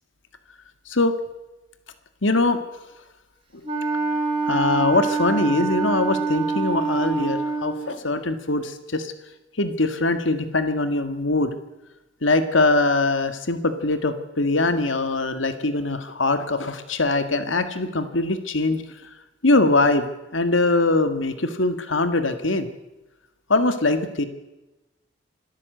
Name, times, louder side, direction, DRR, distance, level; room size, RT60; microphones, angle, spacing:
voice 1, 2.2-2.6 4.4-9.1 9.6-11.5 12.2-18.8 19.4-20.1 20.3-22.7 23.5-24.3, left 2 dB, 90° left, 10 dB, 1.7 m, -22 dB
Wind instrument woodwind instrument, 3.6-7.9, right 4 dB, 30° right, 4.6 m, -25 dB
25.5 x 13.5 x 7.8 m, 1.0 s
head